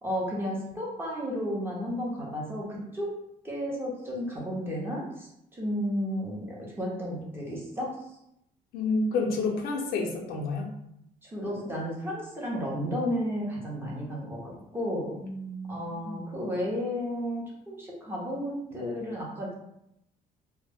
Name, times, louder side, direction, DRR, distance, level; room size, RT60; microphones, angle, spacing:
voice 1, 0.0-3.1 3.4-8.0 11.3-15.1 15.7-19.5, equal, 15° right, -5 dB, 0.7 m, -33 dB
voice 2, 8.7-10.7 15.2-16.2, left 3 dB, 80° left, 0 dB, 0.5 m, -30 dB
2.2 x 2.0 x 3.4 m, 0.79 s
cardioid pair, 155°, 16 cm